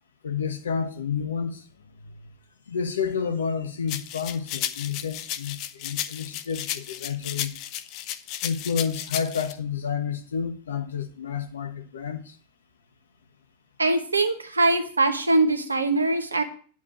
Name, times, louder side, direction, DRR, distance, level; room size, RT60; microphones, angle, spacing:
voice 1, 0.2-1.6 2.0-2.3 2.7-7.5 8.4-12.3, left 6 dB, 65° left, 1.1 m, -30 dB
sound 1, 3.9-9.5, left 12 dB, 40° left, 0.6 m, -33 dB
voice 2, 13.8-16.4, right 2 dB, 80° right, 1.2 m, -22 dB
9.8 x 4.3 x 7.5 m
figure-of-eight pair, 90°, 0 cm